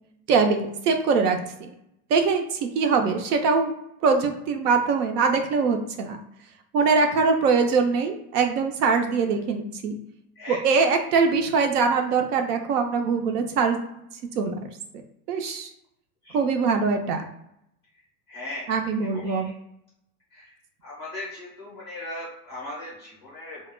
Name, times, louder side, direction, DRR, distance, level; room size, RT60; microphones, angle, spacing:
voice 1, 0.3-1.4 2.1-3.7 4.0-6.2 6.7-10.0 10.5-13.8 14.3-14.5 15.3-15.7 16.3-17.2 18.7-19.5, right 5 dB, 75° right, 5 dB, 0.6 m, -22 dB
voice 2, 10.4-10.8 16.2-16.4 18.3-19.5 20.3-20.5 20.8-23.6, left 1 dB, 20° left, -6 dB, 0.4 m, -38 dB
2.2 x 2.1 x 3.2 m, 0.79 s
supercardioid pair, 180°, 48 cm